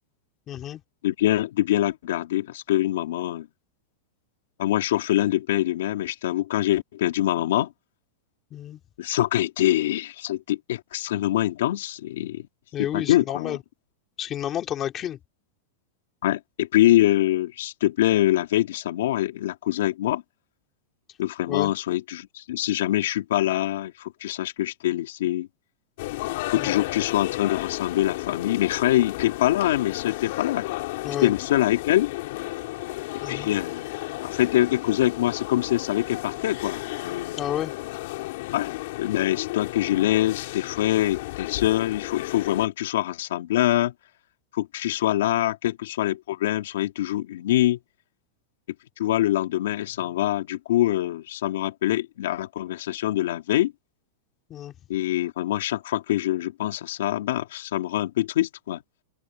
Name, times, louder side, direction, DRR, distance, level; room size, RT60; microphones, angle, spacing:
voice 1, 0.5-0.8 8.5-8.8 12.7-13.6 14.2-15.2 21.5-21.7 26.5-26.7 31.0-31.3 33.2-33.5 37.4-37.7 54.5-54.7, left 11 dB, 20° left, 3.0 m, -30 dB
voice 2, 1.0-3.5 4.6-7.7 9.0-12.5 12.8-13.6 16.2-20.2 21.2-25.5 26.5-30.7 31.2-32.1 33.3-33.9 34.2-37.4 38.5-38.7 39.0-43.9 44.5-47.8 49.0-53.7 54.9-58.8, left 14 dB, 70° left, 2.9 m, -24 dB
sound 1, 26.0-42.7, left 20 dB, 50° left, 5.4 m, -33 dB
open air
supercardioid pair, 170°, 0 cm